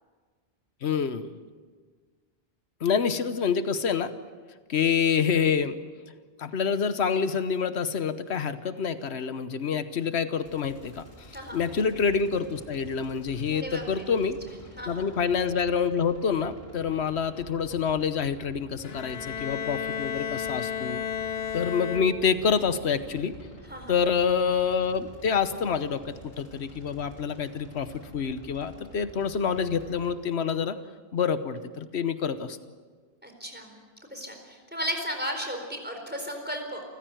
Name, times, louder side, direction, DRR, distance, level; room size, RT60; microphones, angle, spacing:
voice 1, 0.8-1.4 2.8-4.1 4.7-5.8 6.4-11.0 11.5-14.4 14.9-21.0 21.5-23.4 23.9-30.8 31.1-32.6, left 6 dB, 90° left, 11 dB, 1.3 m, -27 dB
sound 1, 10.4-30.1, equal, 50° left, 6.1 m, -49 dB
voice 2, 13.5-14.0 14.8-15.1 23.7-23.9 33.2-33.8 34.1-36.8, equal, 10° right, 3 dB, 4.3 m, -35 dB
Bowed string instrument, 18.8-22.5, left 8 dB, 70° left, 1.1 m, -33 dB
29.0 x 15.0 x 9.1 m, 1.5 s
omnidirectional pair, 1.1 m